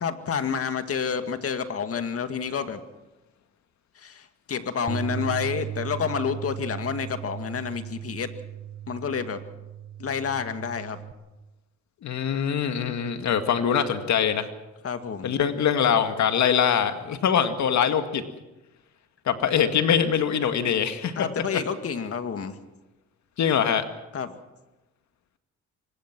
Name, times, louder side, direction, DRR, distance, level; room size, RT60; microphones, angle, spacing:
voice 1, 0.0-2.8 4.0-8.3 8.9-9.4 10.0-11.0 14.8-15.3 21.2-22.5 24.1-24.3, left 6 dB, 50° left, 8 dB, 2.1 m, -29 dB
Bass guitar, 4.9-11.1, right 9 dB, 30° right, 1.6 m, -36 dB
voice 2, 12.0-14.5 15.2-18.2 19.3-21.2 21.5-21.6 23.4-23.9, left 8 dB, 65° left, 8 dB, 2.1 m, -23 dB
24.5 x 21.0 x 6.1 m, 1.0 s
cardioid pair, 90°, 30 cm